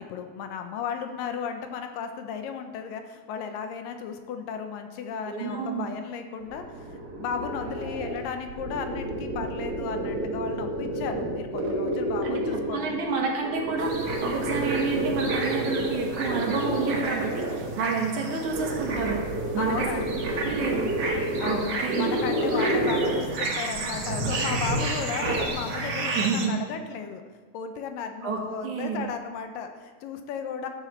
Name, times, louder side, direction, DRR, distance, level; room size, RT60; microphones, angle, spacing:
voice 1, 0.0-6.9 7.2-13.2 18.3-18.4 19.6-20.3 20.7-20.8 21.4-27.2 27.5-30.7, left 6 dB, 75° left, 6 dB, 2.4 m, -35 dB
voice 2, 5.3-5.9 12.2-19.2 19.5-20.0 20.4-20.9 21.4-22.2 26.1-26.6 28.2-29.1, right 4 dB, 60° right, 1 dB, 2.7 m, -29 dB
sound 1, 6.4-13.0 13.4-17.8 18.3-23.5 23.7-25.5, right 1 dB, 85° right, 0.8 m, -30 dB
sound 2, 13.8-26.5, right 3 dB, 45° right, 1.8 m, -33 dB
12.0 x 7.5 x 7.1 m, 1.4 s
omnidirectional pair, 4.1 m